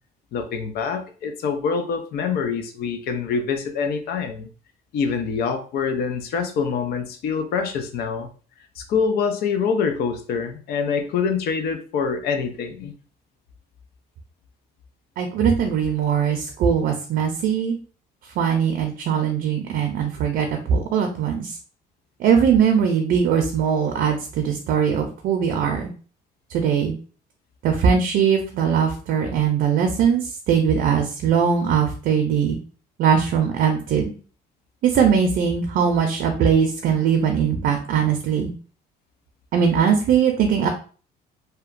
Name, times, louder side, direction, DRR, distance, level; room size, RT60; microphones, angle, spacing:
voice 1, 0.3-4.5 4.9-8.3 8.8-12.9, left 6 dB, 70° left, 7 dB, 0.5 m, -25 dB
voice 2, 15.2-17.8 18.4-21.6 22.2-25.9 26.5-26.9 27.6-32.6 33.0-34.1 34.8-38.5 39.5-40.7, right 7 dB, 65° right, 4 dB, 0.5 m, -20 dB
2.9 x 2.2 x 2.5 m, 0.39 s
cardioid pair, 110°, 17 cm